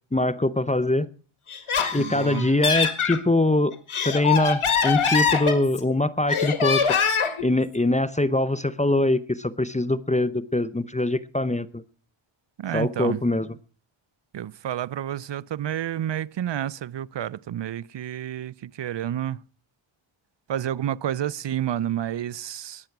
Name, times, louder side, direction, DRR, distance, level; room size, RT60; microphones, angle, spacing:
voice 1, 0.1-1.1 1.9-3.7 4.0-6.8 7.4-11.8 12.7-13.6, left 2 dB, 15° left, 0.7 m, -23 dB
Laughter, 1.5-3.2 3.7-5.9 6.3-7.4, left 6 dB, 85° left, 2.0 m, -23 dB
voice 2, 2.0-2.5 12.6-13.2 14.3-19.4 20.5-22.8, right 11 dB, 60° right, 0.6 m, -30 dB
20.0 x 7.8 x 6.0 m
cardioid pair, 65°, 48 cm